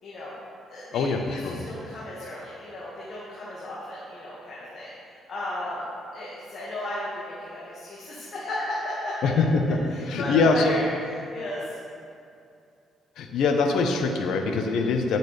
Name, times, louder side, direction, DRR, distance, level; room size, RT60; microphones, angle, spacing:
voice 1, 0.0-0.3 0.7-5.8 6.1-9.2 9.9-10.8 11.3-11.7, left 1 dB, 55° left, -8 dB, 1.7 m, -35 dB
voice 2, 0.9-1.6 9.2-9.8 10.1-10.7 13.2-15.2, left 4 dB, 80° left, 4 dB, 0.8 m, -23 dB
10.5 x 6.6 x 3.3 m, 2.5 s
cardioid pair, 90°, 0 cm